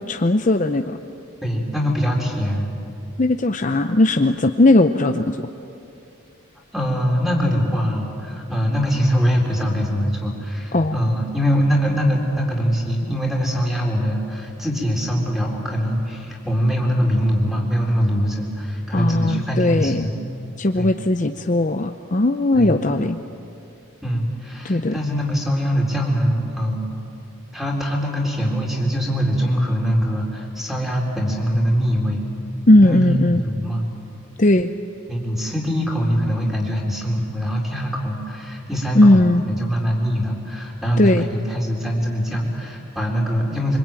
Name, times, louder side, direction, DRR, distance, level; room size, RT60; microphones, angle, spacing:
voice 1, 0.1-1.0 3.2-5.5 10.7-10.9 18.9-20.1 20.6-23.2 24.6-25.0 32.7-33.4 34.4-34.7 38.9-39.4 41.0-41.3, left 1 dB, 35° left, 7 dB, 0.7 m, -17 dB
voice 2, 1.4-2.7 6.7-20.2 20.7-21.0 22.5-22.8 24.0-26.9 27.5-32.2 32.8-33.9 35.1-43.8, equal, ahead, -1 dB, 4.1 m, -22 dB
26.0 x 24.5 x 9.1 m, 2.7 s
head